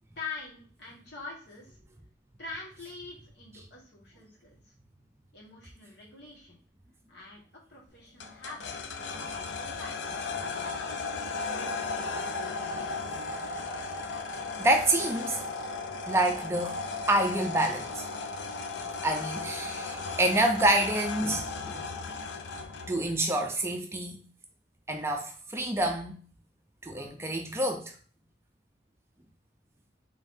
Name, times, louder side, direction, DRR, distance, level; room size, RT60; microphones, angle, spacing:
voice 1, 0.1-1.8 2.4-4.7 5.3-6.6 7.1-7.4 7.7-8.9 9.2-10.2, left 4 dB, 70° left, 1.6 m, -44 dB
sound 1, 8.2-23.0, left 4 dB, 85° left, 0.5 m, -36 dB
voice 2, 14.6-15.4 16.1-16.8 17.1-17.9 19.0-21.8 22.9-24.2 24.9-26.2 26.8-27.9, right 1 dB, 15° right, 0.4 m, -27 dB
3.8 x 3.5 x 2.6 m
head